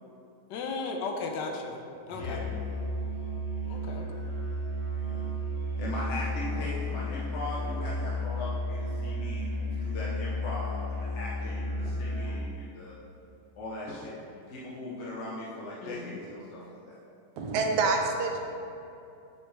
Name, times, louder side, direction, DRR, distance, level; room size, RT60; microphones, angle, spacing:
voice 1, 0.5-2.5 3.6-4.1 15.8-16.2, left 4 dB, 90° left, 2 dB, 1.4 m, -35 dB
voice 2, 2.1-2.5 5.0-5.3 5.8-12.9 13.6-16.8, left 1 dB, 50° left, -5 dB, 1.0 m, -39 dB
Musical instrument, 2.1-12.5, left 1 dB, 30° left, 1.1 m, -33 dB
voice 3, 17.4-18.4, right 3 dB, 80° right, 2 dB, 1.3 m, -26 dB
7.2 x 6.5 x 3.3 m, 2.7 s
omnidirectional pair, 1.8 m